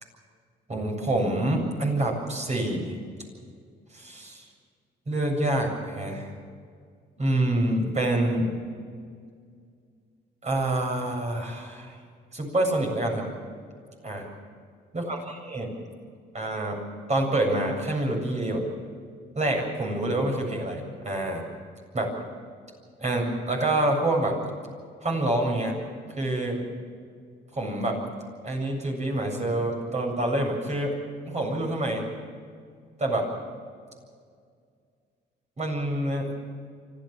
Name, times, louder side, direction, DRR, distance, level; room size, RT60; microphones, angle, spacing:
voice 1, 0.7-3.0 3.9-4.4 5.1-6.3 7.2-8.5 10.4-12.0 12.3-13.3 14.0-14.3 14.9-15.2 15.5-15.7 16.3-16.8 17.1-18.6 19.4-21.4 21.9-22.1 23.0-24.4 25.0-25.8 26.2-26.6 27.5-28.0 28.4-31.0 31.2-32.1 33.0-33.3 35.6-36.3, right 1 dB, 35° right, 1 dB, 7.7 m, -27 dB
25.0 x 15.0 x 7.4 m, 2.1 s
cardioid pair, 90°, 20 cm